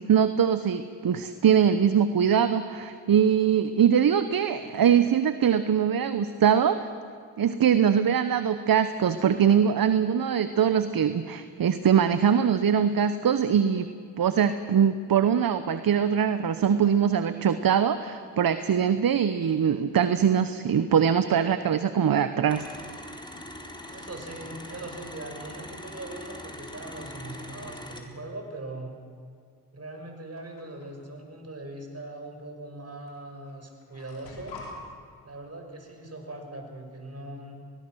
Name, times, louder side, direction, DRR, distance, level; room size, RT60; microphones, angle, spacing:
voice 1, 0.0-6.9 7.4-13.9 14.2-22.6, right 8 dB, 55° right, 11 dB, 1.1 m, -22 dB
sound 1, 22.5-28.0, left 1 dB, 10° left, 4.1 m, -42 dB
voice 2, 23.9-29.0 29.7-34.6 35.2-37.6, right 2 dB, 35° right, 3 dB, 6.0 m, -40 dB
sound 2, 30.4-30.9 32.0-32.1 33.1-33.2 33.4-34.7, left 4 dB, 90° left, 4.0 m, -45 dB
24.5 x 20.5 x 6.4 m, 2.2 s
supercardioid pair, 40°, 42 cm